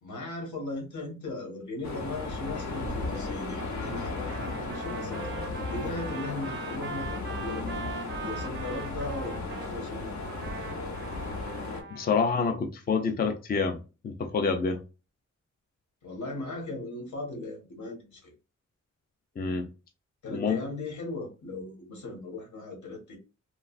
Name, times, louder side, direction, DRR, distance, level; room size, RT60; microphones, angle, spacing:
voice 1, 0.0-7.8 8.2-10.3 16.0-18.3 20.2-23.1, left 2 dB, 85° left, 1 dB, 1.3 m, -38 dB
sound 1, 1.8-11.8, left 3 dB, 65° left, 0.8 m, -35 dB
Trumpet, 4.2-9.7 10.2-12.2, right 6 dB, 40° right, 0.4 m, -41 dB
voice 2, 11.9-13.8 14.0-14.8 19.4-19.7 20.3-20.6, left 5 dB, 30° left, 5 dB, 0.4 m, -27 dB
3.1 x 2.3 x 2.4 m, 0.31 s
wide cardioid pair, 125°, 29 cm